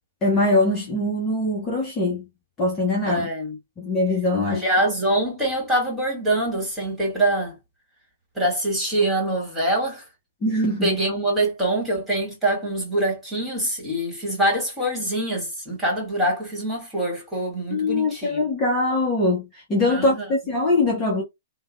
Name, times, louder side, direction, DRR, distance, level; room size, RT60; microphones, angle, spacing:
voice 1, 0.2-2.2 2.6-3.3 3.8-4.6 10.4-10.9 17.7-21.2, left 2 dB, 20° left, 0.8 m, -22 dB
voice 2, 3.0-3.6 4.5-7.6 8.4-10.0 10.7-18.4 19.9-20.3, right 1 dB, 5° right, 1.8 m, -24 dB
3.2 x 2.2 x 2.2 m
figure-of-eight pair, 115°, 0 cm